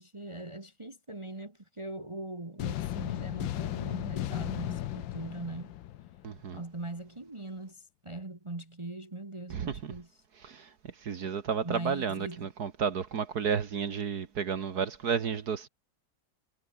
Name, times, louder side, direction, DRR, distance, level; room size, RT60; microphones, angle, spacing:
voice 1, 0.0-5.8 6.5-10.1 11.6-12.5, right 2 dB, 15° right, 1.2 m, -41 dB
sound 1, 2.6-6.6, left 13 dB, 75° left, 1.5 m, -35 dB
voice 2, 6.2-6.6 9.5-9.9 10.4-15.7, right 6 dB, 55° right, 1.8 m, -32 dB
omnidirectional pair, 2.2 m